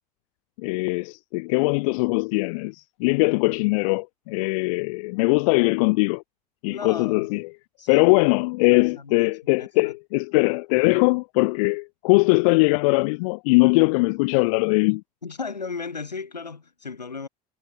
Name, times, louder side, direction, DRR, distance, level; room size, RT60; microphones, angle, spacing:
voice 1, 0.6-6.2 6.6-7.5 7.9-15.0, left 27 dB, 60° left, 1.4 m, -21 dB
voice 2, 6.7-7.3 7.8-8.1 8.7-9.9 15.2-17.3, left 4 dB, 85° left, 5.6 m, -35 dB
figure-of-eight pair, 75°, 21 cm